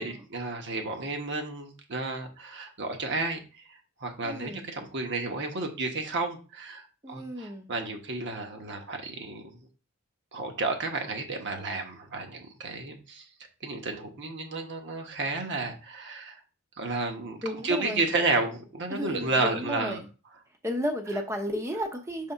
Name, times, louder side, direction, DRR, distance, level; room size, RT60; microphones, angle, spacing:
voice 1, 0.0-9.7 10.3-13.3 13.6-16.4 16.8-20.0, right 3 dB, 55° right, 4 dB, 1.2 m, -32 dB
voice 2, 4.2-4.7 7.0-7.7 17.4-18.0 18.9-20.1 20.6-22.3, equal, 15° right, 5 dB, 0.7 m, -33 dB
5.7 x 3.4 x 5.6 m, 0.34 s
head